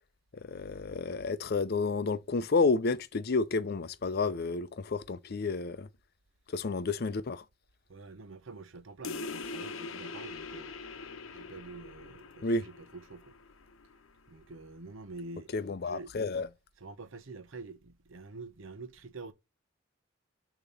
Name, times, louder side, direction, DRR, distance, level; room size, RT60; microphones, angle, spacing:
voice 1, 0.3-5.9 6.5-7.4 12.4-12.7 15.5-16.5, left 3 dB, 50° left, 0.5 m, -30 dB
voice 2, 7.9-10.8 11.3-13.3 14.3-15.5 15.8-16.1 16.8-19.3, right 3 dB, 75° right, 0.8 m, -46 dB
sound 1, 9.0-14.1, left 4 dB, 85° left, 0.7 m, -43 dB
6.9 x 2.9 x 5.2 m
head